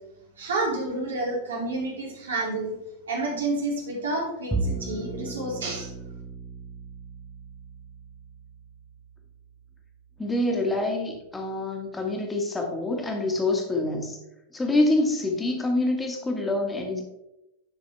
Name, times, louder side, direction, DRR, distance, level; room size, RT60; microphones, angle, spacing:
voice 1, 0.4-2.7 3.1-5.9, right 2 dB, 70° right, -2 dB, 2.7 m, -29 dB
Bowed string instrument, 4.5-10.9, right 3 dB, 5° right, 0.9 m, -36 dB
voice 2, 10.2-14.2 14.5-17.0, left 2 dB, 10° left, 2 dB, 1.8 m, -26 dB
10.0 x 6.1 x 3.3 m, 0.91 s
figure-of-eight pair, 90°, 0 cm